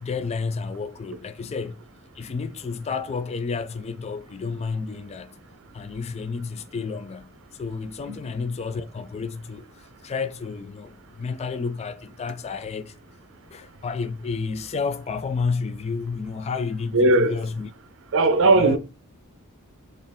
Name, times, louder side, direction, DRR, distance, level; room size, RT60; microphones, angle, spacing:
voice 1, 0.0-1.8 2.1-5.3 5.7-7.3 7.6-13.0 13.5-17.7 18.4-18.8, left 5 dB, 30° left, 0.3 m, -31 dB
voice 2, 16.9-17.3 18.1-18.8, right 2 dB, 60° right, 0.6 m, -18 dB
4.2 x 2.6 x 3.5 m
head